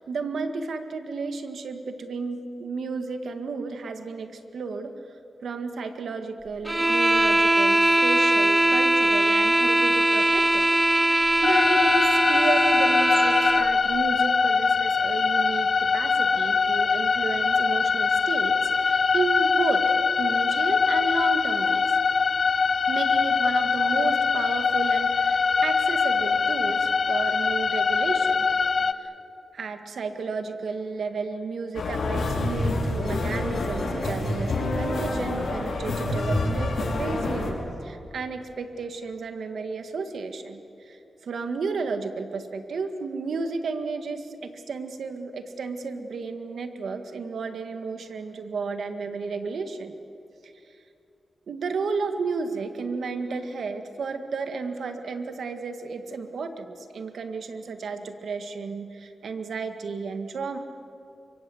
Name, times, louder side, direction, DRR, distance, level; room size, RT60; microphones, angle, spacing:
voice 1, 0.0-5.0 5.4-10.7 11.1-19.8 20.2-22.0 22.9-28.5 28.7-29.1 29.5-49.9 50.4-50.5 51.5-60.6, right 4 dB, 75° right, 7 dB, 1.9 m, -33 dB
sound 1, 6.7-13.7, right 1 dB, 15° right, 0.7 m, -21 dB
sound 2, 11.4-28.9, left 5 dB, 60° left, 0.9 m, -23 dB
sound 3, 31.7-37.5, left 2 dB, 75° left, 5.5 m, -27 dB
24.5 x 24.0 x 8.0 m, 2.7 s
cardioid pair, 85°, 0 cm